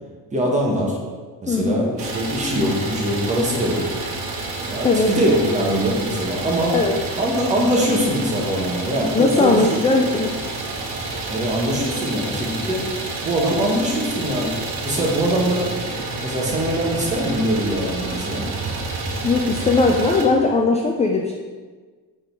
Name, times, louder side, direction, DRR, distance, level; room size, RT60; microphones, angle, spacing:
voice 1, 0.3-1.0 1.4-3.8 4.7-6.7 7.2-9.8 11.3-12.8 13.2-14.5 14.8-15.9 16.2-18.4, right 1 dB, 20° right, -2 dB, 1.3 m, -22 dB
voice 2, 1.5-1.9 4.8-5.1 6.7-7.0 9.1-10.4 19.2-21.3, left 3 dB, 20° left, 2 dB, 0.4 m, -19 dB
Idling, 2.0-20.2, right 3 dB, 90° right, 1.7 m, -29 dB
6.4 x 3.8 x 4.6 m, 1.4 s
cardioid pair, 135°, 37 cm